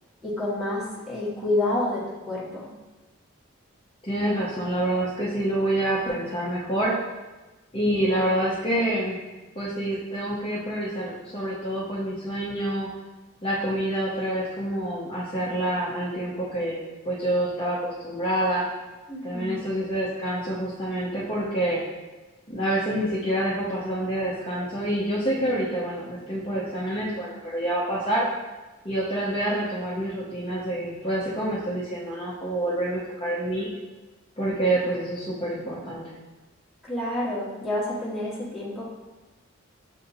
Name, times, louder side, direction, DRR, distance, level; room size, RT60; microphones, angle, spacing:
voice 1, 0.2-2.7 19.1-19.6 36.8-38.9, left 1 dB, ahead, -9 dB, 1.1 m, -29 dB
voice 2, 4.0-6.9 7.7-9.2 9.6-12.9 13.4-16.8 17.0-18.6 19.2-21.8 22.5-28.2 28.8-33.7 34.4-36.0, right 1 dB, 25° left, -7 dB, 0.6 m, -27 dB
6.6 x 2.6 x 2.6 m, 1.2 s
head